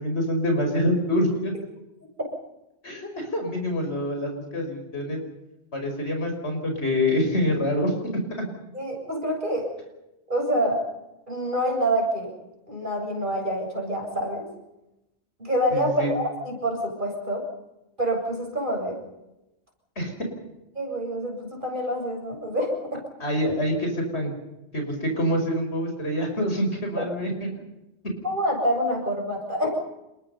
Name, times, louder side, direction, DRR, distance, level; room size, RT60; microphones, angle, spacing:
voice 1, 0.0-1.5 2.8-5.2 5.7-8.5 15.7-16.1 20.0-20.1 23.2-24.3 24.7-27.3, equal, 75° left, 3 dB, 5.6 m, -26 dB
voice 2, 8.7-9.7 10.3-10.8 11.3-12.3 12.7-14.5 15.4-17.4 18.0-19.0 20.7-23.0 27.0-27.1 28.2-29.8, equal, 45° right, 1 dB, 7.9 m, -26 dB
28.0 x 21.5 x 5.5 m, 0.94 s
omnidirectional pair, 1.1 m